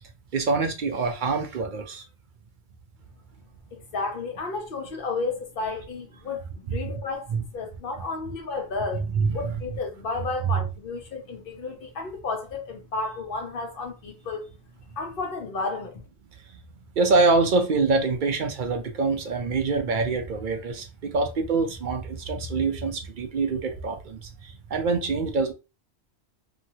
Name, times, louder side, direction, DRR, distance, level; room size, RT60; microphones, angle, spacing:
voice 1, 0.3-2.0 7.3-7.4 8.9-9.6 10.4-10.6 17.0-24.3 24.7-25.5, right 4 dB, 55° right, 0.6 m, -25 dB
voice 2, 3.7-9.0 9.3-14.5 14.9-16.0, left 3 dB, 60° left, 1.0 m, -32 dB
2.9 x 2.8 x 2.7 m
omnidirectional pair, 1.1 m